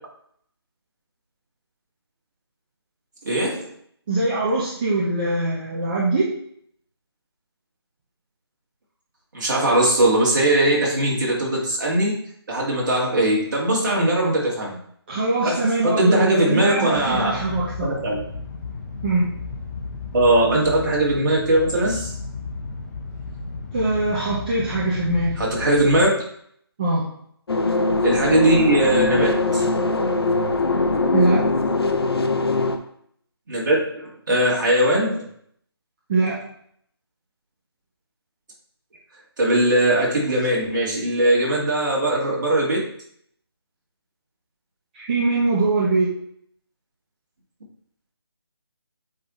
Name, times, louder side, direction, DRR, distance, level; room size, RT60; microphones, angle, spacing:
voice 1, 3.2-3.7 9.3-12.2 12.5-14.8 15.4-17.4 17.8-18.2 20.1-22.1 25.4-26.2 28.0-29.6 33.5-35.3 39.4-42.8, right 1 dB, 45° right, -4 dB, 2.3 m, -20 dB
voice 2, 4.1-6.3 15.1-18.0 19.0-19.3 23.7-25.3 26.8-27.0 31.1-31.4 36.1-36.4 44.9-46.1, right 2 dB, 20° right, -7 dB, 0.9 m, -22 dB
sound 1, 16.9-26.1, left 3 dB, 35° left, 1.0 m, -33 dB
sound 2, 27.5-32.8, left 2 dB, 65° left, 0.8 m, -21 dB
8.3 x 4.1 x 3.2 m, 0.66 s
figure-of-eight pair, 160°, 14 cm